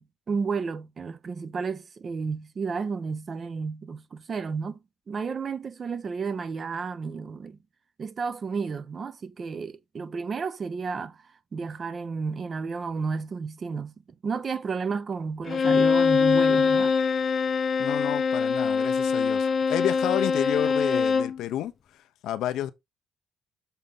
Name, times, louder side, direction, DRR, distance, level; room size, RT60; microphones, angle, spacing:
voice 1, 0.0-7.6 8.0-13.9 14.2-16.9, right 5 dB, 30° right, 0.6 m, -32 dB
Bowed string instrument, 15.5-21.4, left 5 dB, 35° left, 0.6 m, -23 dB
voice 2, 17.8-21.7 22.2-22.7, left 12 dB, 85° left, 0.7 m, -30 dB
6.8 x 4.3 x 3.8 m
cardioid pair, 150°, 0 cm